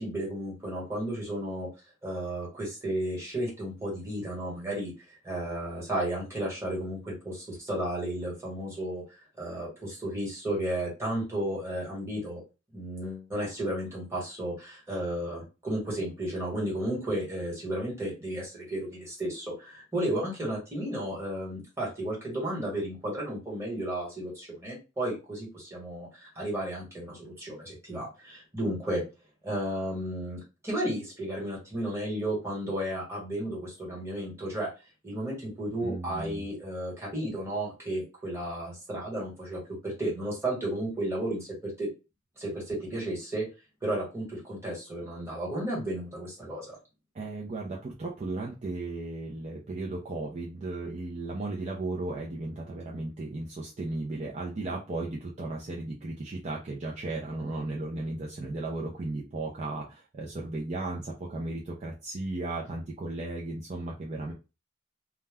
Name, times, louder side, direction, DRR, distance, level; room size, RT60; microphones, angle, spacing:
voice 1, 0.0-1.7 2.0-9.0 9.4-12.4 12.7-29.0 29.4-34.7 35.0-41.9 42.4-43.5 43.8-46.8, right 1 dB, 15° right, -4 dB, 1.3 m, -33 dB
voice 2, 35.8-36.5 47.1-64.3, right 2 dB, 35° right, -2 dB, 0.5 m, -35 dB
2.3 x 2.1 x 3.4 m, 0.29 s
head